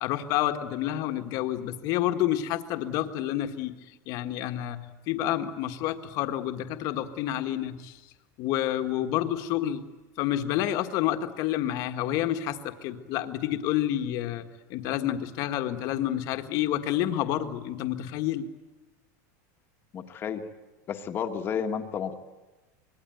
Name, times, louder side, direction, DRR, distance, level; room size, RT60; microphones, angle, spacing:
voice 1, 0.0-3.7 4.1-4.8 5.1-8.0 8.4-9.8 10.2-18.5, left 12 dB, 40° left, 7 dB, 1.6 m, -29 dB
voice 2, 19.9-20.4 20.9-22.2, left 7 dB, 25° left, 6 dB, 1.5 m, -31 dB
25.5 x 21.0 x 9.2 m, 1.1 s
supercardioid pair, 170°, 10 cm